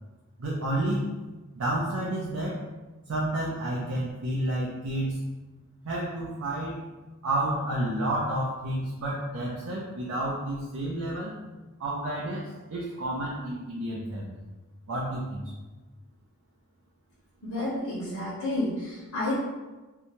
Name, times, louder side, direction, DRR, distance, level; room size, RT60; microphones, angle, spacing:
voice 1, 0.4-1.1 1.5-2.6 3.1-5.2 5.8-6.8 7.2-11.3 11.8-14.4 14.9-15.5, right 1 dB, 80° right, -5 dB, 0.5 m, -30 dB
voice 2, 17.4-19.4, left 1 dB, 85° left, -9 dB, 0.9 m, -30 dB
2.7 x 2.2 x 2.9 m, 1.2 s
head